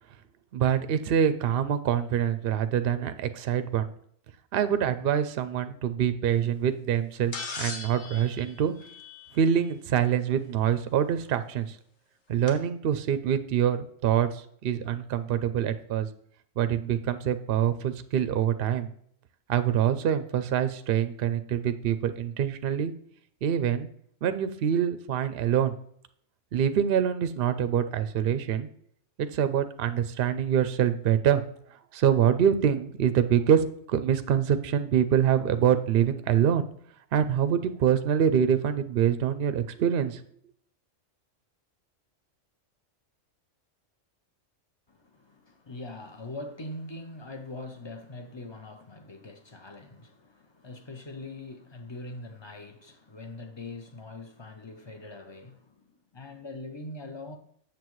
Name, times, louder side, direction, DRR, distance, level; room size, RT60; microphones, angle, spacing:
voice 1, 0.5-3.9 4.5-8.7 9.3-11.8 12.3-16.1 16.6-18.9 19.5-22.9 23.4-23.9 24.2-25.7 26.5-28.7 29.2-31.4 31.9-36.7 37.1-40.2, right 9 dB, 60° right, 0.6 m, -25 dB
sound 1, 7.3-9.6 11.2-11.3 12.5-12.6, left 4 dB, 60° left, 1.3 m, -39 dB
voice 2, 44.9-57.4, left 2 dB, 30° left, 0.5 m, -42 dB
7.8 x 6.9 x 3.1 m
omnidirectional pair, 1.4 m